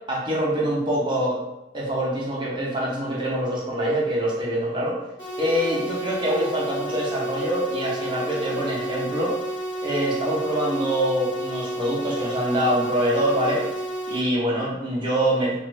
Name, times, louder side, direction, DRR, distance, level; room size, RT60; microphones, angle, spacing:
voice 1, 0.1-1.4 1.7-5.0 5.4-9.4 9.8-13.7 14.1-15.6, right 1 dB, 25° right, -5 dB, 0.8 m, -25 dB
sound 1, 5.2-14.2, right 1 dB, 25° left, 1.2 m, -31 dB
2.6 x 2.5 x 3.1 m, 0.92 s
head